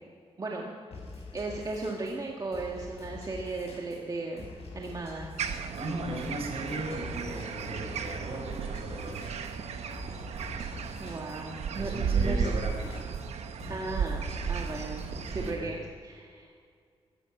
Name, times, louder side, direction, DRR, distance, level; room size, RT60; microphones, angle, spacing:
voice 1, 0.4-0.7 1.3-4.5 4.7-5.3 11.0-12.5 13.6-15.8 16.0-16.5, right 3 dB, 35° right, -1 dB, 2.0 m, -36 dB
sound 1, 0.9-15.7, left 3 dB, 75° left, 5.4 m, -45 dB
sound 2, 5.4-15.5, right 6 dB, 85° right, 1.1 m, -34 dB
voice 2, 5.8-9.3 11.7-13.1 15.2-15.7, right 1 dB, 65° right, 1 dB, 5.0 m, -37 dB
16.0 x 14.0 x 6.1 m, 2.2 s
cardioid pair, 95°, 11 cm